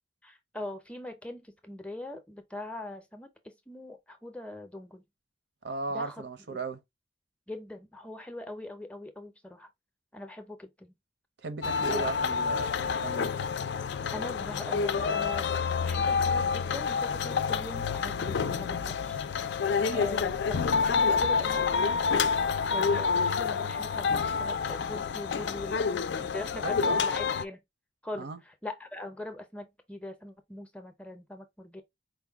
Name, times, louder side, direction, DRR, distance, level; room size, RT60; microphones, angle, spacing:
voice 1, 0.2-5.0 5.9-6.2 6.5-6.6 7.5-9.7 10.1-11.0 11.9-12.0 14.1-19.2 19.8-22.3 22.7-27.6 28.0-31.8, left 1 dB, 5° left, 0.5 m, -41 dB
voice 2, 5.6-6.8 11.4-13.3 19.9-20.1 26.6-27.0 28.1-28.4, right 3 dB, 65° right, 0.7 m, -36 dB
sound 1, 11.6-27.4, left 5 dB, 65° left, 0.4 m, -28 dB
4.5 x 2.2 x 3.4 m
head